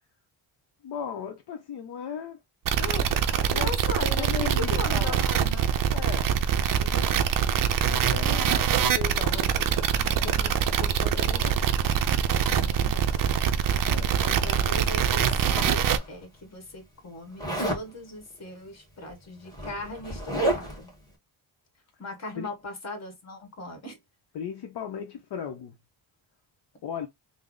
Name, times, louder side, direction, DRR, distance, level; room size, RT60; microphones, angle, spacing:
voice 1, 0.8-2.4 2.8-3.1 3.5-3.7 4.0-5.2 5.9-6.3 6.8-7.1 7.8-11.6 13.8-14.2 22.4-22.5 24.3-25.8 26.8-27.1, left 7 dB, 60° left, 0.7 m, -37 dB
sound 1, 2.6-16.0, right 8 dB, 50° right, 0.5 m, -24 dB
voice 2, 3.4-5.7 8.6-8.7 12.5-13.5 14.2-20.9 22.0-24.0, left 1 dB, 35° left, 1.4 m, -39 dB
Zipper (clothing), 14.4-16.1 17.4-17.9 19.0-19.1 19.4-20.9, right 1 dB, 10° left, 1.4 m, -31 dB
3.3 x 2.1 x 3.7 m
cardioid pair, 130°, 45 cm